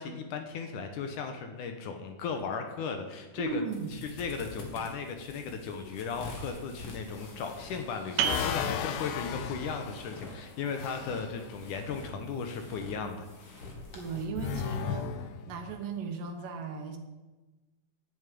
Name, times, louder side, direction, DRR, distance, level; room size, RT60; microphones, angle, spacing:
voice 1, 0.0-3.6 3.9-13.3 14.9-15.0, left 5 dB, 70° left, 5 dB, 2.2 m, -36 dB
sound 1, 3.4-14.2, left 3 dB, 45° left, 2.4 m, -46 dB
voice 2, 3.4-4.0 13.9-15.1 15.5-17.0, right 5 dB, 70° right, 5 dB, 2.7 m, -36 dB
sound 2, 7.4-11.3 14.3-15.8, left 9 dB, 85° left, 2.4 m, -36 dB
sound 3, 8.2-13.5, right 9 dB, 90° right, 2.7 m, -38 dB
10.5 x 7.2 x 9.1 m, 1.2 s
omnidirectional pair, 4.2 m